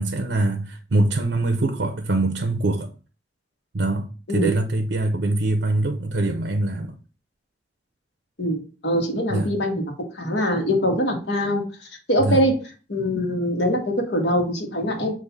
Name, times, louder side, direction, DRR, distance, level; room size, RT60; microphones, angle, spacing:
voice 1, 0.0-2.9 3.7-7.0 9.3-9.5 12.2-12.4, right 2 dB, 80° right, 0.7 m, -23 dB
voice 2, 8.4-9.8 10.1-11.7 12.1-12.5 12.9-15.1, equal, 70° left, 1.6 m, -23 dB
6.6 x 2.7 x 5.6 m
head